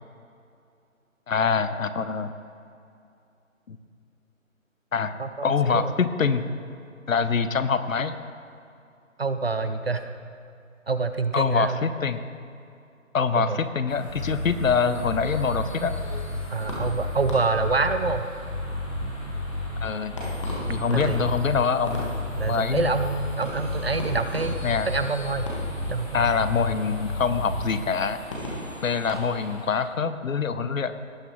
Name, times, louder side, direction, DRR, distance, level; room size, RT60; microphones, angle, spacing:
voice 1, 1.3-2.3 3.7-3.8 4.9-5.1 5.4-6.4 7.1-8.1 11.3-12.2 13.1-16.0 19.8-20.2 20.7-22.1 22.5-22.9 24.6-24.9 26.1-28.2 28.8-30.9, left 5 dB, 70° left, 12 dB, 0.8 m, -24 dB
voice 2, 5.2-5.9 9.2-10.1 10.9-11.8 13.3-13.6 16.5-18.3 20.9-21.3 22.3-24.6 24.9-25.5 25.9-26.3, right 4 dB, 50° right, 10 dB, 0.5 m, -26 dB
sound 1, 13.9-29.9, left 1 dB, 20° left, 1.6 m, -39 dB
sound 2, 14.1-14.6 15.0-16.4 16.7-18.1 18.4-19.8 20.1-21.5 21.8-23.2 23.5-24.9 25.3-26.6 27.0-27.6, left 1 dB, 20° right, 1.6 m, -33 dB
17.5 x 7.2 x 3.1 m, 2.5 s
figure-of-eight pair, 165°, 41 cm